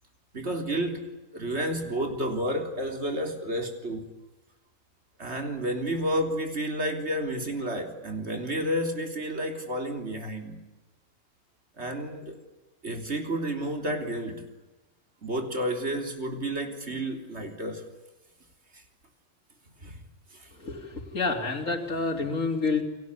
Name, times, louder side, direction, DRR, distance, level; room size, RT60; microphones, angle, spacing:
voice 1, 0.3-4.1 5.2-10.6 11.8-12.4 12.8-14.5 15.2-17.9 18.7-18.8 19.8-20.0 20.3-20.5, right 1 dB, 55° right, 3.9 m, -31 dB
voice 2, 20.6-22.8, left 3 dB, 75° left, 3.7 m, -28 dB
30.0 x 22.5 x 8.6 m
omnidirectional pair, 1.4 m